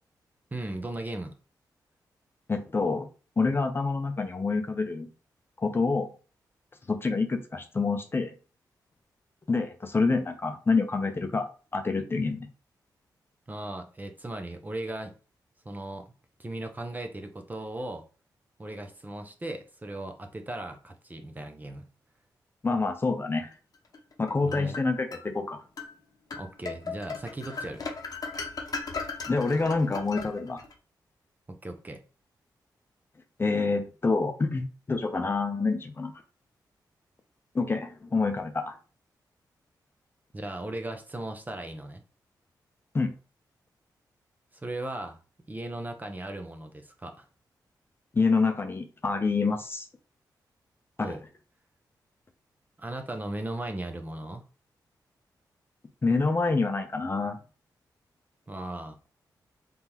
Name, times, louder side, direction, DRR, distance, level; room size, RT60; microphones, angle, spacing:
voice 1, 0.5-1.3 13.5-15.1 15.6-16.1 16.4-18.0 18.6-21.9 24.4-24.8 26.3-27.9 31.5-32.0 40.3-42.0 44.5-45.2 45.5-47.3 51.0-51.2 52.8-54.4 58.5-59.0, right 1 dB, 25° right, 0.7 m, -37 dB
voice 2, 2.5-3.1 3.4-5.1 5.6-6.1 6.9-8.3 9.5-12.5 22.6-23.5 24.2-25.6 29.3-30.6 33.4-36.1 37.5-38.8 42.9-43.1 48.1-49.9 51.0-51.2 56.0-57.4, left 4 dB, 30° left, 0.6 m, -27 dB
sound 1, 23.9-25.2 25.8-25.9 26.3-30.7, left 4 dB, 55° left, 0.8 m, -37 dB
3.7 x 3.4 x 2.9 m
cardioid pair, 80°, 8 cm